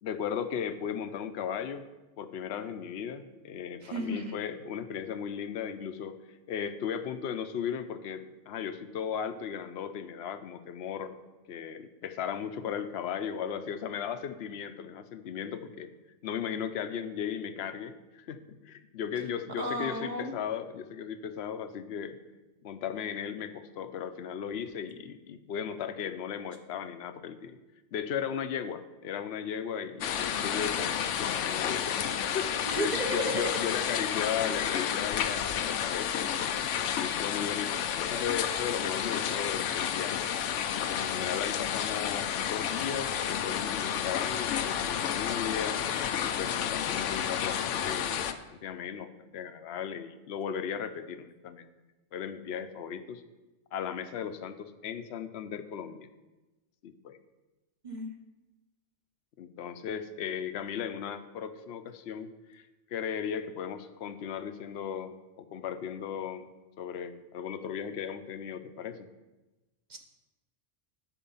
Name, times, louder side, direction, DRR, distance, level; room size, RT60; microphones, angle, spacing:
voice 1, 0.0-1.8 2.2-11.2 11.5-15.9 16.2-22.2 22.6-27.6 27.9-36.4 37.0-40.3 40.7-45.8 46.2-51.7 52.1-53.2 53.7-56.1 56.8-57.2 59.4-62.6 62.9-66.5 66.8-69.1, left 8 dB, 65° left, 10 dB, 0.9 m, -36 dB
voice 2, 3.8-4.4 19.6-20.3 32.6-33.6 57.8-58.1 69.9-70.0, right 1 dB, 40° right, 4 dB, 1.2 m, -33 dB
sound 1, 30.0-48.3, left 9 dB, 90° left, 0.9 m, -31 dB
13.0 x 4.7 x 5.5 m, 1.1 s
omnidirectional pair, 1.2 m